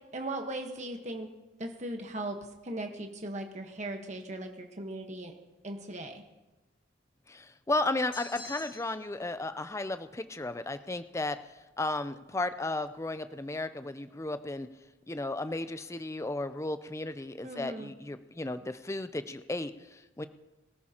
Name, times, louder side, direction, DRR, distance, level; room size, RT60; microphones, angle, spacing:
voice 1, 0.1-1.3 1.6-2.4 2.6-5.3 5.6-6.2 17.4-17.9, right 1 dB, 40° right, 3 dB, 1.3 m, -38 dB
voice 2, 7.3-14.7 15.1-20.3, left 2 dB, 15° left, 11 dB, 0.5 m, -34 dB
sound 1, 8.1-9.1, left 2 dB, 30° left, 3.8 m, -46 dB
23.0 x 13.5 x 2.9 m, 1.1 s
head